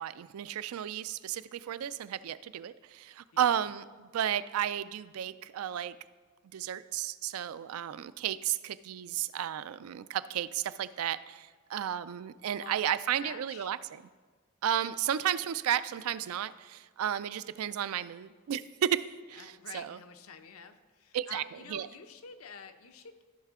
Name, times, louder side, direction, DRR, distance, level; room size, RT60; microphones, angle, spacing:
voice 1, 0.0-6.0 6.5-14.0 14.6-20.0 21.1-21.4 21.7-21.9, right 10 dB, 85° right, 15 dB, 0.3 m, -33 dB
voice 2, 3.3-3.6 12.6-13.7 19.3-23.2, left 6 dB, 85° left, 8 dB, 0.7 m, -49 dB
14.5 x 5.6 x 3.6 m, 1.4 s
head